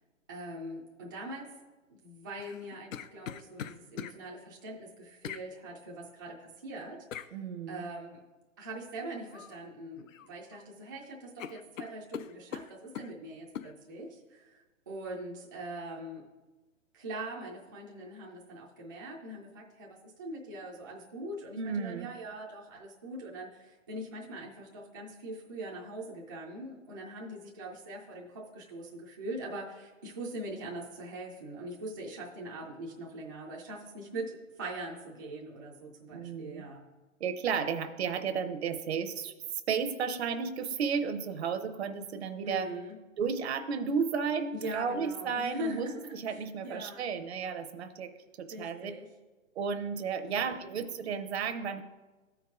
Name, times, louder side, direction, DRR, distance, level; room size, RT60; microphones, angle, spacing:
voice 1, 0.3-1.5 1.9-7.4 7.7-8.2 8.6-16.3 16.9-36.8 42.4-43.0 44.5-47.0 48.5-49.1 50.3-50.6, right 1 dB, 15° right, -4 dB, 0.4 m, -42 dB
sound 1, 2.4-4.2 5.2-5.5 7.1-7.3 9.3-9.6 9.9-10.6 10.9-11.0 11.4-13.1 13.5-13.7, left 9 dB, 80° left, 0.6 m, -41 dB
voice 2, 7.3-7.8 21.6-22.1 36.1-36.6 37.2-39.3 39.7-42.7 43.2-48.1 48.4-48.9 49.6-51.8, right 6 dB, 55° right, 9 dB, 0.7 m, -33 dB
13.5 x 4.7 x 3.6 m, 1.2 s
hypercardioid pair, 150°, 39 cm